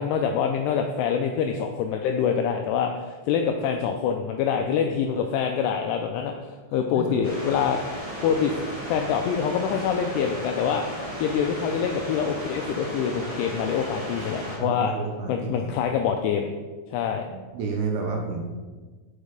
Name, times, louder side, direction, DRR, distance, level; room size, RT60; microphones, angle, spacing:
voice 1, 0.0-7.8 8.2-8.5 8.9-10.8 11.2-14.9 15.3-16.5 16.9-17.2, left 7 dB, 85° left, 4 dB, 2.4 m, -25 dB
voice 2, 6.9-7.2 14.2-14.3 14.6-15.7 17.3-18.4, right 5 dB, 75° right, 1 dB, 2.7 m, -31 dB
sound 1, 7.2-14.6, equal, 25° left, 0.8 m, -35 dB
6.5 x 5.4 x 5.1 m, 1.3 s
omnidirectional pair, 5.2 m